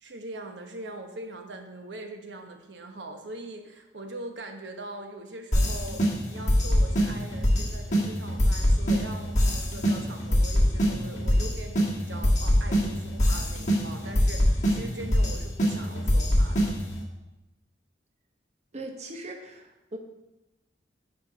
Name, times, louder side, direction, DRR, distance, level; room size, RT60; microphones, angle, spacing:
voice 1, 0.0-16.8, right 1 dB, 80° right, 4 dB, 1.0 m, -42 dB
sound 1, 5.5-17.0, equal, 40° left, 1.6 m, -24 dB
voice 2, 18.7-20.0, right 2 dB, 40° right, 3 dB, 0.8 m, -39 dB
9.7 x 4.4 x 4.8 m, 0.99 s
head